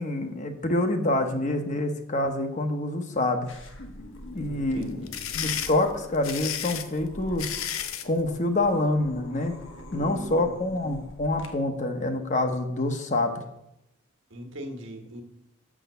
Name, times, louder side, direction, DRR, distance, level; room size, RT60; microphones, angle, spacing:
voice 1, 0.0-3.5 4.3-5.1 5.3-7.5 8.0-9.6 9.9-13.4, left 2 dB, 35° left, 6 dB, 0.9 m, -26 dB
sound 1, 3.5-11.5, left 1 dB, 65° left, 1.3 m, -45 dB
voice 2, 4.4-5.3 9.9-10.5 14.3-15.2, equal, 60° right, 3 dB, 1.5 m, -40 dB
sound 2, 4.8-8.1, left 9 dB, 85° left, 0.7 m, -32 dB
7.3 x 6.2 x 6.8 m, 0.85 s
head